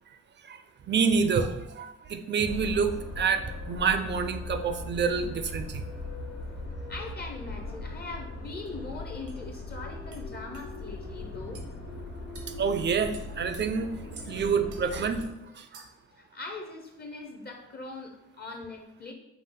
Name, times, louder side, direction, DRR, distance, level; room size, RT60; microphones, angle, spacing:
voice 1, 0.9-5.8 12.6-13.9 14.3-15.2 15.6-15.8, right 5 dB, 35° right, 8 dB, 0.4 m, -27 dB
sound 1, 2.4-15.3, left 2 dB, 65° left, 1.4 m, -39 dB
voice 2, 6.9-11.6 14.3-14.4 16.1-19.1, left 3 dB, 35° left, 3 dB, 0.6 m, -41 dB
sound 2, 8.7-8.8 9.3-9.4 10.1-10.2 10.5-10.7 11.5-11.7 12.3-12.5 13.1-13.6 14.1-14.3 14.7-14.8 15.2-15.3 15.7-16.0, right 5 dB, 75° right, 0.8 m, -49 dB
5.5 x 2.4 x 3.6 m, 0.96 s
cardioid pair, 90°, 30 cm